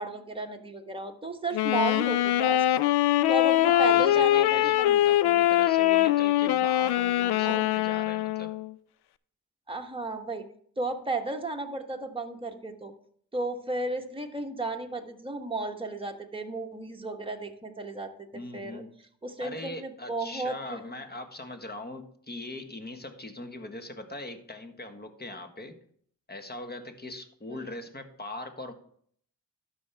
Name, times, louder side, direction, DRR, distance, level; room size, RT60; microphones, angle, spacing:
voice 1, 0.0-2.8 3.3-4.9 7.4-7.6 9.7-10.5 10.8-12.9 13.3-18.8 19.2-20.8 27.5-27.8, right 2 dB, 10° right, 3 dB, 1.3 m, -34 dB
Wind instrument woodwind instrument, 1.5-8.7, left 14 dB, 65° left, 0.5 m, -23 dB
voice 2, 3.7-8.5 18.3-18.9 19.4-25.8 26.3-28.7, left 2 dB, 20° left, 6 dB, 1.5 m, -40 dB
12.0 x 5.7 x 3.5 m, 0.62 s
supercardioid pair, 45°, 43 cm